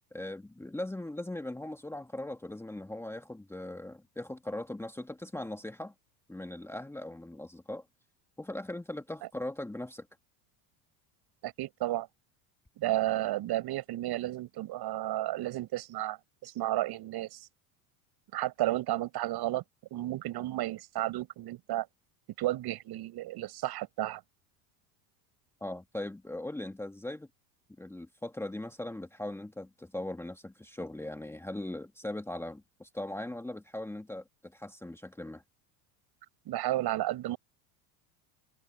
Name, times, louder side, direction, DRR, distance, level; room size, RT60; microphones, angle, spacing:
voice 1, 0.1-5.9 6.3-7.8 8.4-10.1 25.6-27.3 27.8-35.4, left 1 dB, 5° left, 1.6 m, -39 dB
voice 2, 11.4-12.1 12.8-17.5 18.3-19.6 19.9-21.9 22.4-24.2 36.5-37.4, right 15 dB, 50° right, 7.3 m, -32 dB
supercardioid pair, 95°, 47 cm